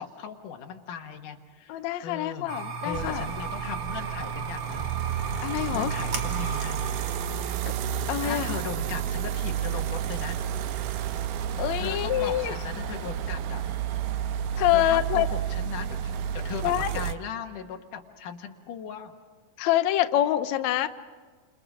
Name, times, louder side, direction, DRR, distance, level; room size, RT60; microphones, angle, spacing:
voice 1, 0.0-2.5 2.8-4.9 5.7-6.8 7.6-7.7 8.2-10.4 11.8-13.6 13.9-14.0 14.7-19.1, left 7 dB, 65° left, 4 dB, 2.9 m, -38 dB
voice 2, 1.7-3.3 5.4-5.9 8.1-8.6 11.6-12.5 14.6-15.3 16.6-16.9 19.6-20.9, left 13 dB, 80° left, 9 dB, 1.6 m, -25 dB
sound 1, 2.5-9.1, right 5 dB, 45° right, 2.1 m, -36 dB
sound 2, 2.9-17.1, right 9 dB, 75° right, 2.3 m, -31 dB
30.0 x 28.0 x 5.0 m, 1.5 s
omnidirectional pair, 4.2 m